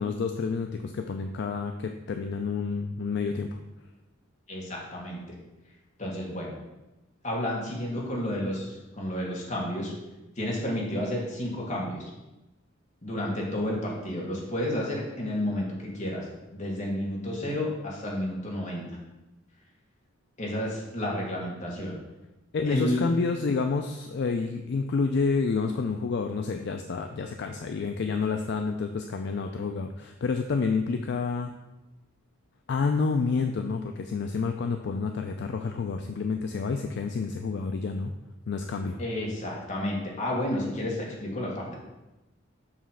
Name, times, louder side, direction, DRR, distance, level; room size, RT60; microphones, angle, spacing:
voice 1, 0.0-3.5 22.5-31.5 32.7-38.1 38.5-39.0, left 4 dB, 55° left, 5 dB, 0.4 m, -29 dB
voice 2, 4.5-5.4 6.0-6.5 7.2-9.9 10.4-12.1 13.0-18.8 20.4-21.9 22.6-23.1 39.0-41.7, left 1 dB, 35° left, -3 dB, 1.6 m, -31 dB
7.3 x 3.1 x 5.6 m, 1.0 s
head